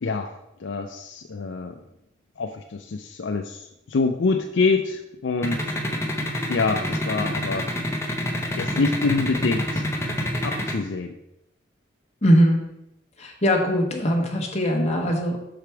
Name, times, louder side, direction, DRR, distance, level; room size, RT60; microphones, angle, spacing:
voice 1, 0.0-0.3 0.6-1.7 2.4-5.7 6.5-7.7 8.6-9.9 10.4-11.2, left 4 dB, 65° left, 5 dB, 0.4 m, -26 dB
sound 1, 5.4-10.7, left 1 dB, 15° left, 0.8 m, -26 dB
voice 2, 12.2-12.6 13.2-15.4, equal, 35° left, 0 dB, 1.1 m, -21 dB
6.0 x 5.0 x 4.5 m, 0.85 s
head